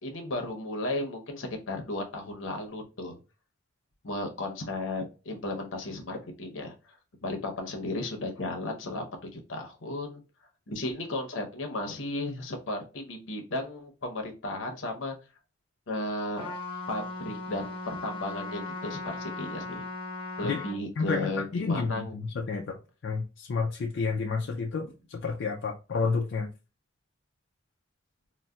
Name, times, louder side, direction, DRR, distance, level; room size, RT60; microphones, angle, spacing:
voice 1, 0.0-3.2 4.0-6.7 7.2-10.2 10.7-15.2 15.9-16.5 16.9-19.8 20.4-22.1, left 2 dB, 80° left, 0.8 m, -34 dB
Trumpet, 16.4-20.8, left 2 dB, 25° left, 0.8 m, -37 dB
voice 2, 21.0-26.5, left 4 dB, 65° left, 0.4 m, -30 dB
3.9 x 2.1 x 2.3 m
head